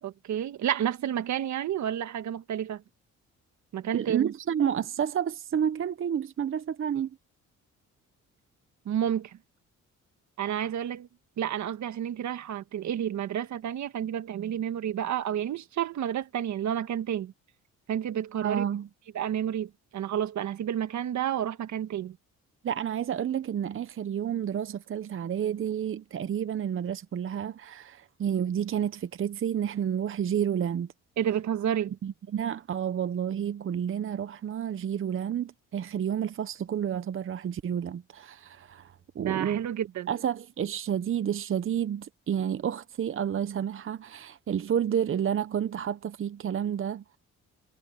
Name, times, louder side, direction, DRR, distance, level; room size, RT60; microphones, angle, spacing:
voice 1, 0.0-2.8 3.7-4.3 8.8-9.4 10.4-11.1 11.4-17.3 17.9-18.6 19.1-22.2 31.2-32.0 39.2-40.1, right 10 dB, 70° right, 1.6 m, -30 dB
voice 2, 3.9-7.2 18.4-18.9 22.6-30.9 32.0-39.7 40.1-47.2, right 9 dB, 45° right, 0.8 m, -30 dB
cardioid pair, 90°, 30 cm